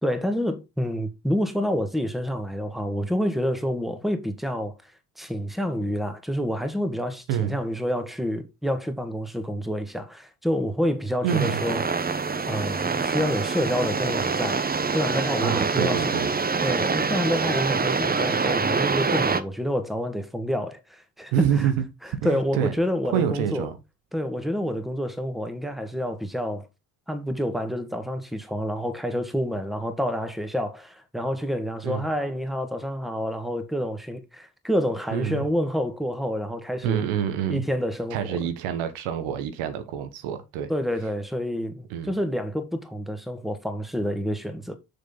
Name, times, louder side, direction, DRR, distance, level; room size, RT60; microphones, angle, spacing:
voice 1, 0.0-4.9 5.2-12.1 12.5-14.6 14.9-16.1 16.6-21.7 22.2-23.7 24.1-26.7 27.1-37.0 37.5-38.4 40.7-44.7, equal, ahead, 1.9 m, -28 dB
voice 2, 7.3-7.6 11.2-11.6 15.4-16.3 21.3-21.8 22.2-22.7 23.0-23.8 31.8-32.1 35.1-35.4 36.8-37.6 38.1-40.7 41.9-42.1, right 9 dB, 70° right, 1.2 m, -27 dB
sound 1, 11.3-19.4, right 4 dB, 20° right, 0.9 m, -25 dB
6.8 x 6.6 x 4.0 m
hypercardioid pair, 50°, 48 cm